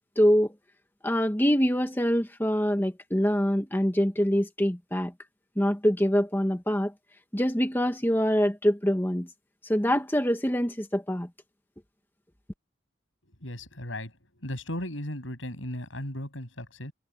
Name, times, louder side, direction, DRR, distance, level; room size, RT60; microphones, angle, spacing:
voice 1, 0.2-0.5 1.0-5.1 5.6-6.9 7.3-9.3 9.6-11.3, equal, 10° left, 1.3 m, -24 dB
voice 2, 13.4-14.1 14.4-16.9, left 1 dB, 80° left, 7.5 m, -36 dB
head